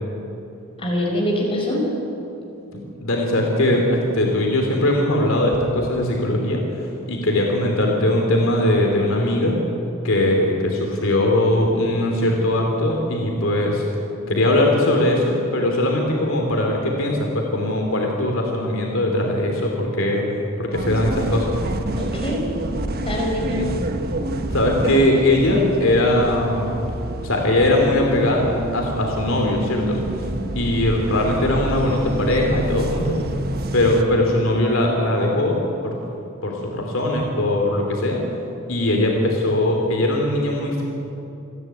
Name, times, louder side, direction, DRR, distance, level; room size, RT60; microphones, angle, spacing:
voice 1, 0.8-1.8 22.0-22.4 23.0-23.6, left 1 dB, 25° left, -2 dB, 5.4 m, -24 dB
voice 2, 3.0-9.6 10.0-13.8 14.3-20.2 20.6-21.6 23.6-23.7 24.5-26.8 27.2-30.0 30.5-33.2 33.7-35.6 35.8-35.9 36.4-38.2 38.7-40.8, left 1 dB, 70° left, 0 dB, 3.0 m, -20 dB
sound 1, 20.7-34.0, right 1 dB, 50° right, 1.3 m, -28 dB
28.0 x 11.0 x 9.2 m, 2.8 s
head